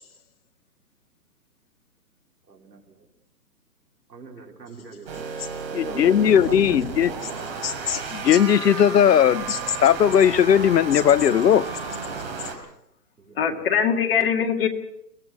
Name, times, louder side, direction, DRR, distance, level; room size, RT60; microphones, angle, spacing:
voice 1, 2.5-3.1 4.1-5.3 5.7-7.3 7.9-8.0 13.2-13.6 13.9-14.0, right 4 dB, 90° right, 5.0 m, -42 dB
sound 1, 5.1-12.5, right 5 dB, 35° right, 4.1 m, -33 dB
voice 2, 5.7-7.1 8.1-9.5 9.8-11.6, left 9 dB, 75° left, 0.7 m, -18 dB
voice 3, 7.6-8.2 9.5-9.6 13.4-14.7, left 7 dB, 35° left, 2.1 m, -23 dB
Wind instrument woodwind instrument, 7.9-12.2, right 2 dB, 10° right, 3.2 m, -40 dB
22.5 x 18.5 x 6.3 m
hypercardioid pair, 160°, 50 cm